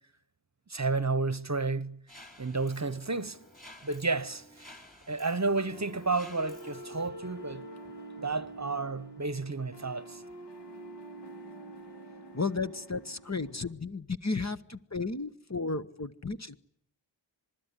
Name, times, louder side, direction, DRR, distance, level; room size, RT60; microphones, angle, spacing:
voice 1, 0.7-2.0 2.4-3.4 3.8-4.4 5.1-7.6 8.2-10.2, right 3 dB, 35° right, 1.0 m, -31 dB
Mechanisms, 2.1-7.1, equal, 20° left, 4.4 m, -53 dB
sound 1, 5.7-13.7, right 2 dB, 55° left, 2.6 m, -46 dB
voice 2, 12.3-16.6, left 4 dB, 35° left, 1.1 m, -33 dB
26.5 x 20.5 x 9.9 m
wide cardioid pair, 50°, 47 cm